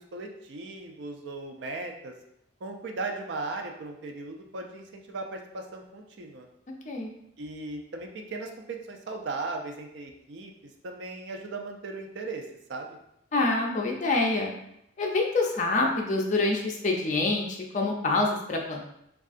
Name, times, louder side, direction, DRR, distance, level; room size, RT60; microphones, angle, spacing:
voice 1, 0.0-2.1 2.6-6.5 7.4-12.4 12.7-13.0, right 3 dB, 60° right, 3 dB, 0.4 m, -37 dB
voice 2, 13.3-14.5 15.0-18.8, left 2 dB, 40° left, 0 dB, 0.4 m, -26 dB
3.5 x 2.3 x 2.4 m, 0.77 s
head